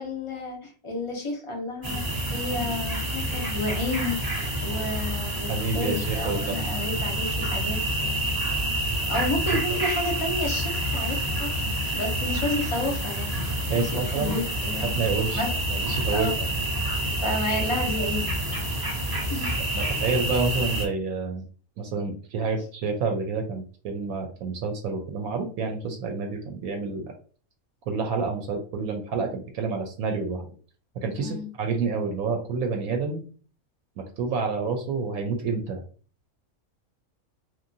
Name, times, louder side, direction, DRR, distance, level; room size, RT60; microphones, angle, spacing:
voice 1, 0.0-4.4 4.6-8.2 9.1-13.4 13.7-14.9 15.3-15.6 16.1-16.3 17.2-18.3 19.3-19.5 20.0-20.1 31.2-31.5, left 2 dB, 35° left, 1 dB, 0.5 m, -31 dB
sound 1, 1.8-20.8, right 1 dB, 35° right, 0.3 m, -28 dB
voice 2, 5.5-6.6 9.5-9.8 13.6-14.4 14.8-16.3 19.7-21.4 21.8-27.0 27.9-30.5 31.0-33.2 34.0-35.8, right 4 dB, 80° right, 3 dB, 1.0 m, -29 dB
2.9 x 2.4 x 2.6 m, 0.41 s
omnidirectional pair, 1.5 m